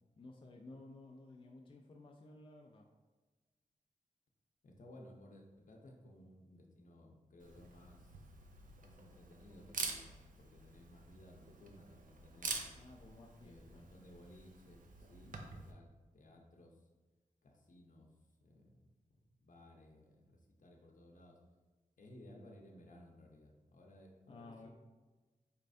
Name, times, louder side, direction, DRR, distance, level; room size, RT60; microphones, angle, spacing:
voice 1, 0.2-2.9 12.7-13.9 15.2-15.6 24.3-24.7, left 2 dB, 35° left, 1 dB, 0.3 m, -55 dB
voice 2, 4.6-8.2 8.8-10.1 10.4-12.8 13.4-16.8 17.4-18.1 18.4-18.9 19.4-21.4 22.0-24.7, left 1 dB, 65° left, 1 dB, 0.7 m, -59 dB
Camera, 7.4-15.7, right 4 dB, 70° right, 0.5 m, -47 dB
4.4 x 3.2 x 2.6 m, 1.3 s
wide cardioid pair, 90°, 14 cm